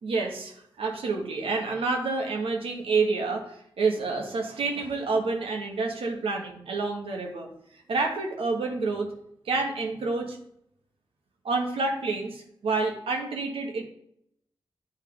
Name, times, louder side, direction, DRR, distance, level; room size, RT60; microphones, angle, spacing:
voice 1, 0.0-9.1 9.4-10.4 11.4-13.8, right 3 dB, 85° right, 1 dB, 1.2 m, -28 dB
9.0 x 3.2 x 3.8 m, 0.74 s
cardioid pair, 50°, 9 cm